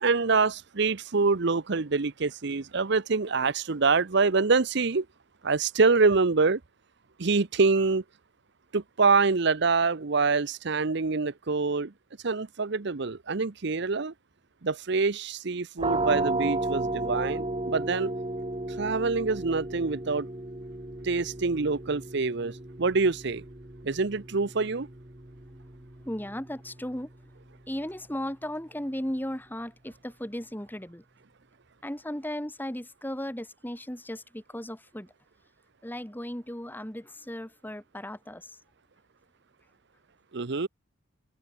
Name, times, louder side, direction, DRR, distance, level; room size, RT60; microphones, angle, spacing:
voice 1, 0.0-5.1 5.4-6.6 7.2-8.0 8.7-11.9 12.2-14.1 14.6-18.1 18.8-20.3 21.0-23.4 23.8-24.9 40.3-40.7, right 4 dB, 60° right, 0.8 m, -25 dB
sound 1, 15.8-27.3, right 2 dB, 25° right, 1.8 m, -34 dB
voice 2, 26.0-27.1 27.7-31.0 31.8-35.1 35.8-38.5, left 1 dB, 10° left, 2.1 m, -36 dB
head